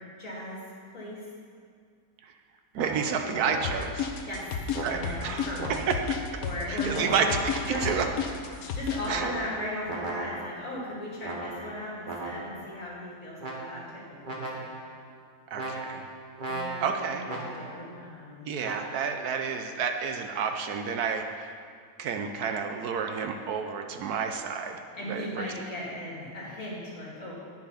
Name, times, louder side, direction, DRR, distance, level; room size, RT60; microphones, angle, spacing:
voice 1, 0.2-0.7 0.9-1.2 4.3-4.5 4.9-5.9 6.4-7.4 7.7-8.1 8.7-14.7 16.5-18.5 24.9-27.3, left 1 dB, 50° left, -6 dB, 2.9 m, -37 dB
sound 1, 2.7-4.1 4.7-6.2 6.9-8.4 9.1-10.7 11.2-12.7 13.4-14.0 14.2-15.0 15.5-17.9 18.6-19.0, right 2 dB, 35° right, 1.2 m, -37 dB
voice 2, 2.7-4.1 4.8-5.4 5.7-6.0 6.7-7.3 7.8-8.0 9.1-9.3 15.5-16.0 16.8-17.2 18.5-21.5 22.0-24.8 25.1-25.5, right 6 dB, 70° right, 5 dB, 1.1 m, -30 dB
sound 2, 3.6-9.1, left 7 dB, 65° left, 1.2 m, -31 dB
10.5 x 6.7 x 5.7 m, 2.2 s
omnidirectional pair, 1.7 m